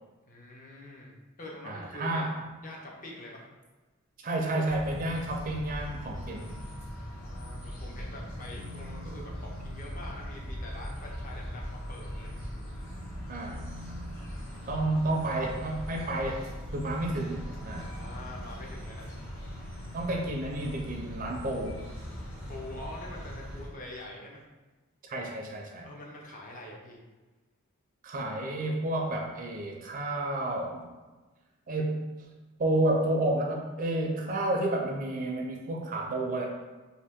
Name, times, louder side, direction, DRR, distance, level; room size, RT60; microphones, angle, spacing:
voice 1, 0.3-2.4 2.6-3.5 7.0-12.5 17.8-19.1 22.5-24.4 25.8-27.0, left 1 dB, 40° left, -2 dB, 0.6 m, -45 dB
voice 2, 1.7-2.4 4.2-6.5 13.3-13.7 14.7-16.4 16.7-17.9 19.9-21.9 25.1-25.9 28.0-30.8 31.7-32.0 32.6-36.5, right 1 dB, 40° right, 0 dB, 0.4 m, -30 dB
sound 1, 4.7-23.7, equal, 70° left, 1.4 m, -40 dB
2.7 x 2.7 x 3.5 m, 1.2 s
head